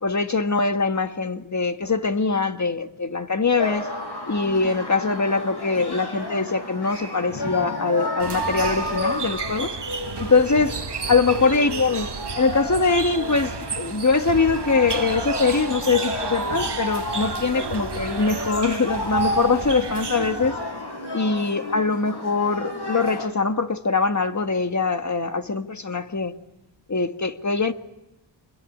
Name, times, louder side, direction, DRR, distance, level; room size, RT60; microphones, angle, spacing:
voice 1, 0.0-3.9 4.3-9.8 10.2-10.8 11.1-12.1 12.4-20.5 21.1-26.3 26.9-27.7, left 4 dB, 35° left, 1.7 m, -22 dB
sound 1, 3.6-23.3, left 1 dB, 55° left, 6.1 m, -31 dB
sound 2, 8.2-20.7, right 5 dB, 60° right, 1.6 m, -33 dB
28.0 x 21.0 x 9.8 m
cardioid pair, 55°, 46 cm